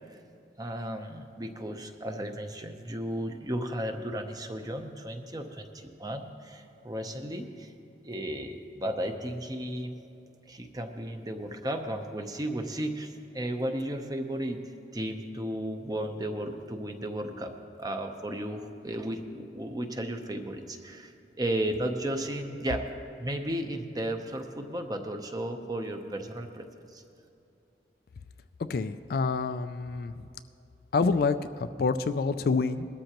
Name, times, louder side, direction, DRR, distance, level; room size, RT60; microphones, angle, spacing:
voice 1, 0.6-7.7 8.0-10.0 10.5-22.9 23.2-27.0, right 1 dB, 20° right, 5 dB, 0.8 m, -34 dB
voice 2, 28.7-30.1 30.9-32.9, left 4 dB, 55° left, 11 dB, 0.3 m, -27 dB
20.5 x 13.0 x 3.0 m, 2.7 s
head